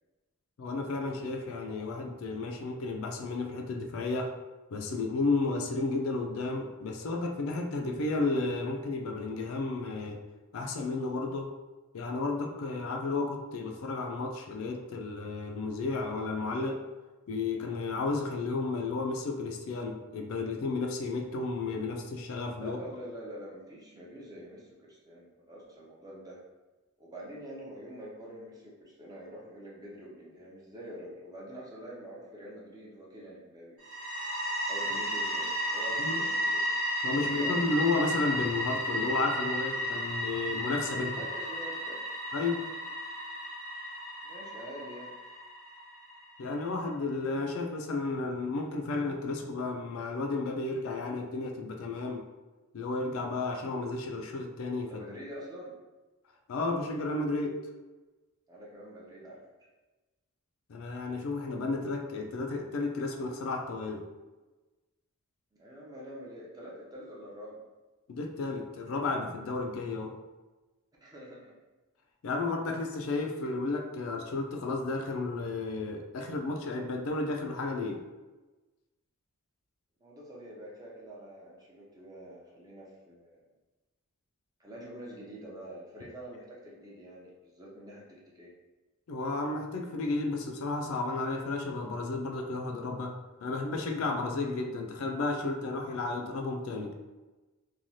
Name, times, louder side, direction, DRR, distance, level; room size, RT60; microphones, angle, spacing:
voice 1, 0.6-4.3 4.7-10.2 10.5-11.5 11.9-16.8 17.3-22.8 36.0-36.2 37.0-41.3 42.3-42.7 46.4-52.2 52.7-55.0 56.5-57.7 60.7-64.1 68.1-70.2 72.2-78.0 89.1-97.0, left 3 dB, 65° left, 3 dB, 0.3 m, -32 dB
voice 2, 22.6-26.4 27.0-33.8 34.7-36.8 37.2-37.9 41.1-42.0 44.2-45.2 54.9-55.8 58.5-59.4 65.6-67.6 71.0-71.5 80.0-83.4 84.6-88.5, equal, 15° right, -5 dB, 0.5 m, -46 dB
sound 1, 33.8-46.5, equal, 85° right, 1.0 m, -34 dB
3.0 x 2.3 x 2.6 m, 1.2 s
head